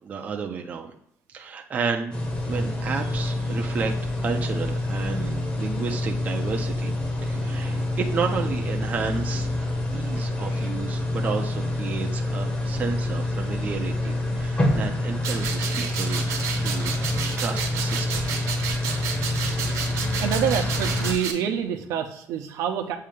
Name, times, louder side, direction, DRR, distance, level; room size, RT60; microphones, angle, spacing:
voice 1, 0.0-0.9 1.3-2.1 2.5-6.9 7.2-16.3 16.6-17.0 17.4-18.3, right 5 dB, 30° right, 3 dB, 0.6 m, -32 dB
sound 1, 2.1-21.1, left 1 dB, 20° left, 1.2 m, -27 dB
sound 2, 4.9-14.9 15.5-22.1, equal, ahead, 0.9 m, -48 dB
sound 3, 15.2-21.3, right 6 dB, 65° right, 1.3 m, -31 dB
voice 2, 20.2-23.0, right 8 dB, 85° right, 5 dB, 0.9 m, -27 dB
7.6 x 2.9 x 5.0 m, 0.72 s
cardioid pair, 175°, 6 cm